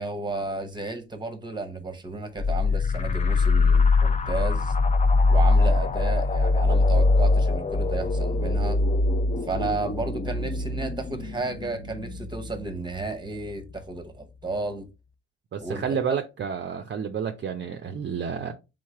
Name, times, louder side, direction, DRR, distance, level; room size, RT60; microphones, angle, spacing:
voice 1, 0.0-4.7 5.3-8.9 9.4-14.9 15.6-16.0, right 3 dB, 15° right, 0.9 m, -33 dB
sound 1, 2.4-13.7, left 3 dB, 25° left, 0.4 m, -23 dB
voice 2, 15.5-18.5, right 7 dB, 40° right, 0.5 m, -30 dB
3.7 x 3.2 x 3.6 m
cardioid pair, 90°, 30 cm